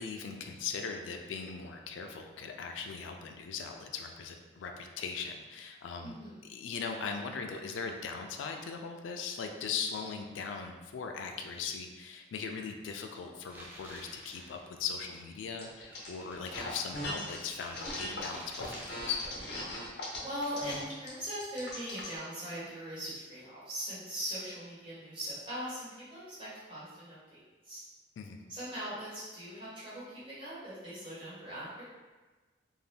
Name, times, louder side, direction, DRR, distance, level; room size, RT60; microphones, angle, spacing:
voice 1, 0.0-6.2 6.5-19.2 28.2-28.4, left 5 dB, 90° left, 4 dB, 0.3 m, -39 dB
voice 2, 6.0-6.4 20.2-27.8 28.5-31.8, equal, 30° right, -10 dB, 1.1 m, -40 dB
sound 1, 13.5-19.3, equal, 10° right, 0.4 m, -52 dB
sound 2, 15.6-16.1 16.4-17.4 17.7-22.2, left 1 dB, 70° left, 0.8 m, -39 dB
2.7 x 2.1 x 3.3 m, 1.3 s
head